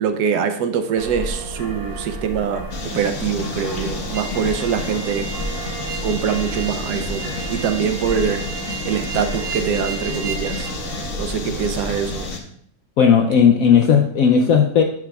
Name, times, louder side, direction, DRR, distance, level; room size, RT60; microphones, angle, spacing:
voice 1, 0.0-5.3 6.0-8.4 8.8-10.7 11.2-12.2, right 7 dB, 75° right, 8 dB, 1.1 m, -23 dB
sound 1, 0.9-12.3, right 1 dB, 30° right, 0.4 m, -32 dB
sound 2, 2.7-12.4, left 4 dB, 55° left, 1.1 m, -31 dB
sound 3, 4.1-10.7, right 6 dB, 50° right, 1.0 m, -34 dB
voice 2, 13.0-14.8, left 7 dB, 70° left, 3 dB, 0.8 m, -14 dB
10.5 x 5.9 x 2.3 m, 0.66 s
omnidirectional pair, 1.9 m